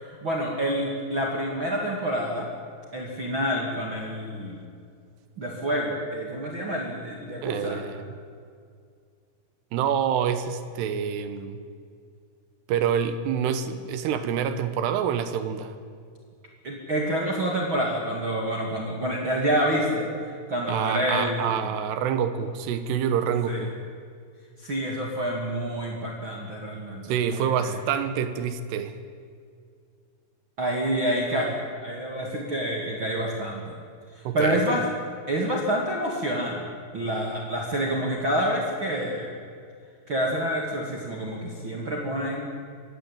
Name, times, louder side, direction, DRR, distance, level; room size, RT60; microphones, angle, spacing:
voice 1, 0.0-2.5 2.9-4.6 5.4-7.8 16.6-21.7 23.5-23.6 24.6-27.0 27.3-27.8 30.6-33.7 34.1-34.8 35.3-36.7 36.9-39.3 40.1-42.5, equal, 35° right, -1 dB, 2.4 m, -28 dB
voice 2, 7.4-8.1 9.7-11.6 12.7-15.7 20.7-23.7 27.0-29.0 34.2-34.6, right 8 dB, 80° right, 10 dB, 3.3 m, -27 dB
23.0 x 16.5 x 8.8 m, 2.2 s
omnidirectional pair, 4.8 m